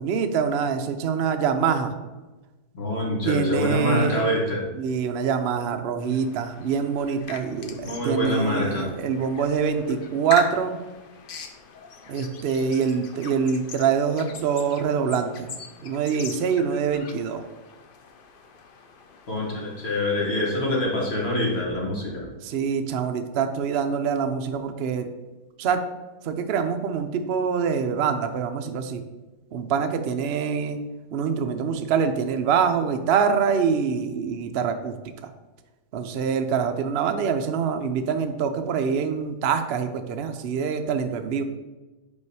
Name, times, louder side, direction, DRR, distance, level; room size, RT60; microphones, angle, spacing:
voice 1, 0.0-1.9 3.2-4.3 4.8-10.8 12.1-15.5 15.8-17.5 22.4-25.1 25.6-25.8 26.2-29.0 29.5-30.8 31.1-34.9 35.9-41.4, right 6 dB, 75° right, 7 dB, 0.5 m, -25 dB
voice 2, 2.7-4.7 7.8-8.9 19.3-22.3, left 1 dB, 40° left, -4 dB, 1.7 m, -25 dB
sound 1, 6.0-21.6, left 5 dB, 85° left, 0.4 m, -42 dB
5.4 x 4.7 x 4.7 m, 1.1 s
omnidirectional pair, 1.7 m